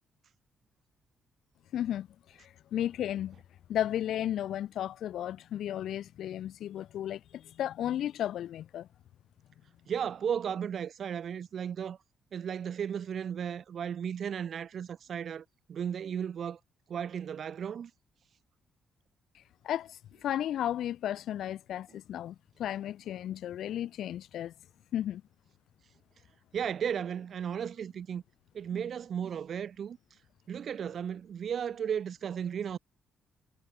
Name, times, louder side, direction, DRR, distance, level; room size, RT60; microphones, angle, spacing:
voice 1, 1.7-2.1 2.4-3.4 3.7-8.9 19.6-24.5 24.9-25.2, left 11 dB, 75° left, 0.4 m, -34 dB
voice 2, 9.9-12.0 12.3-16.6 16.9-17.9 26.5-28.2 28.5-30.0 30.5-32.8, right 8 dB, 55° right, 0.9 m, -35 dB
cardioid pair, 90°, 0 cm